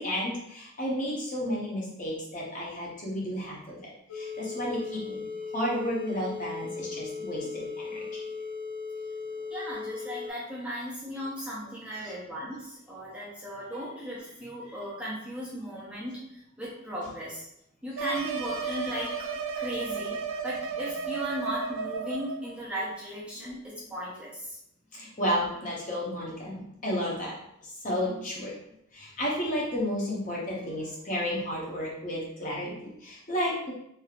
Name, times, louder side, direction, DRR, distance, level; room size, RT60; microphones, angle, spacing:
voice 1, 0.0-5.2 5.5-8.1 11.9-12.1 23.5-23.6 24.9-27.4 27.6-28.5 28.9-33.7, equal, 35° left, -4 dB, 0.8 m, -32 dB
sound 1, 4.1-10.3, left 4 dB, 70° left, 0.5 m, -37 dB
voice 2, 9.5-16.2 16.6-17.5 17.8-19.1 19.5-20.2 20.4-24.5, equal, 5° right, -7 dB, 0.5 m, -36 dB
sound 2, 18.0-22.4, right 5 dB, 75° right, 0.4 m, -33 dB
3.2 x 2.6 x 2.4 m, 0.76 s
head